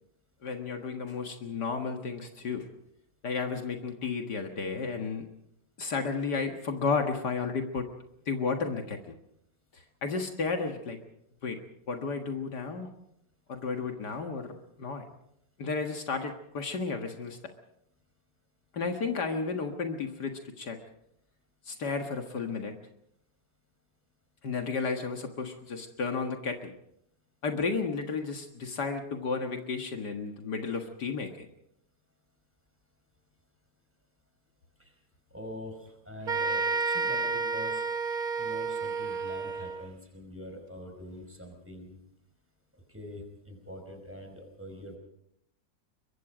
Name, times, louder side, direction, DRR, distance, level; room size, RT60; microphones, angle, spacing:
voice 1, 0.4-2.7 3.2-5.3 5.8-7.9 8.3-9.0 9.7-11.0 11.4-11.6 11.9-12.9 13.5-15.0 15.6-17.4 18.7-20.8 21.7-22.7 24.4-26.7 27.4-31.5, left 4 dB, 65° left, 4 dB, 2.2 m, -33 dB
voice 2, 35.3-37.8 38.4-42.0 42.9-45.0, left 1 dB, 5° right, 4 dB, 5.0 m, -44 dB
sound 1, 36.3-39.9, right 4 dB, 35° right, 1.0 m, -30 dB
23.5 x 22.5 x 5.0 m, 0.74 s
omnidirectional pair, 1.9 m